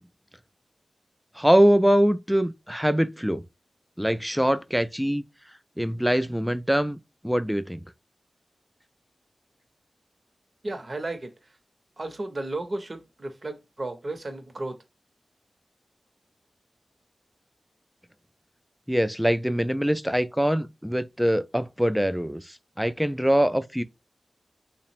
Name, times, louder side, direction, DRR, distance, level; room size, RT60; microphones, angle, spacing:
voice 1, 1.4-3.4 4.0-5.2 5.8-7.0 7.2-7.8 18.9-23.8, equal, ahead, 0.3 m, -23 dB
voice 2, 10.6-11.3 12.0-14.8, right 2 dB, 45° right, 0.7 m, -34 dB
3.3 x 2.0 x 4.2 m
wide cardioid pair, 85°, 0 cm